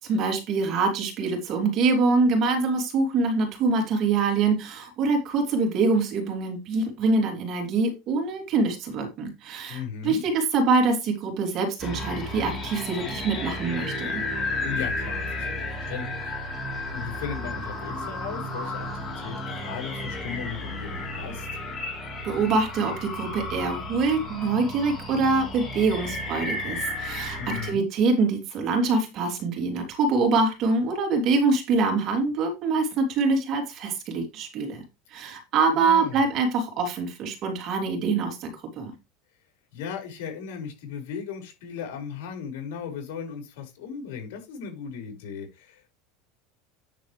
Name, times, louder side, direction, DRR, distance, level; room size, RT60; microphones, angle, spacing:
voice 1, 0.0-14.2 22.2-34.8 35.1-38.9, right 3 dB, 35° right, 4 dB, 3.0 m, -25 dB
voice 2, 9.7-10.2 14.6-16.3 16.9-21.5 27.4-27.8 35.7-36.2 39.7-46.0, left 7 dB, 75° left, 3 dB, 5.0 m, -37 dB
sound 1, 11.8-27.7, left 2 dB, 20° left, 3.8 m, -33 dB
9.2 x 7.1 x 3.4 m, 0.25 s
supercardioid pair, 160°, 0 cm